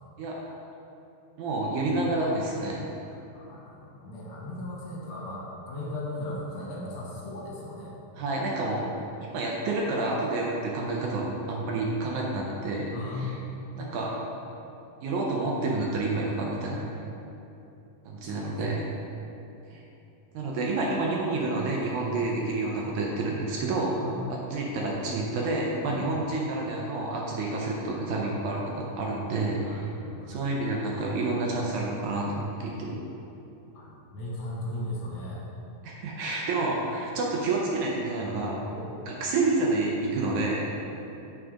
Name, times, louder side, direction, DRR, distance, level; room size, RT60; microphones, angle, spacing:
voice 1, 0.2-0.5 1.4-2.8 8.2-8.9 9.3-13.3 13.8-14.2 15.0-17.0 18.1-18.8 19.7-19.8 20.3-24.0 24.5-29.9 30.3-32.9 35.8-38.7 39.0-40.7, right 2 dB, 75° right, -2 dB, 1.8 m, -29 dB
voice 2, 3.3-7.9 8.6-9.2 12.9-13.3 18.2-18.6 22.0-22.3 23.9-24.3 25.9-26.1 29.6-30.5 33.7-33.9 34.1-35.5 38.7-38.9, left 1 dB, 60° left, -5 dB, 1.5 m, -37 dB
7.8 x 3.9 x 4.9 m, 2.9 s
omnidirectional pair, 4.1 m